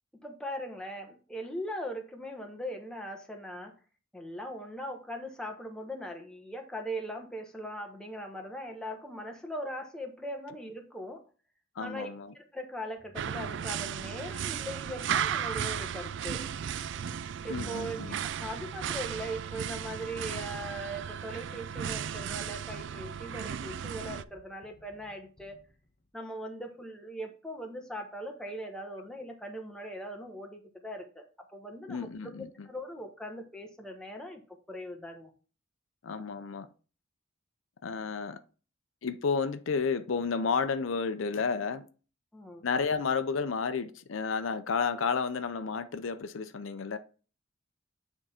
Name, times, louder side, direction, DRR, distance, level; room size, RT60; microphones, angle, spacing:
voice 1, 0.2-3.7 4.1-11.2 11.8-16.4 17.4-25.6 26.1-34.4 34.7-35.3 42.3-42.7, equal, 5° left, 1.2 m, -40 dB
voice 2, 11.8-12.3 17.5-18.2 31.9-32.5 36.0-36.7 37.8-38.4 39.0-41.9 42.6-47.0, left 5 dB, 80° left, 0.6 m, -31 dB
sound 1, 13.1-24.2, right 8 dB, 60° right, 0.3 m, -35 dB
sound 2, 15.6-18.1, right 1 dB, 40° right, 2.1 m, -59 dB
sound 3, 21.3-26.1, left 2 dB, 40° left, 1.3 m, -60 dB
8.9 x 3.6 x 4.3 m
head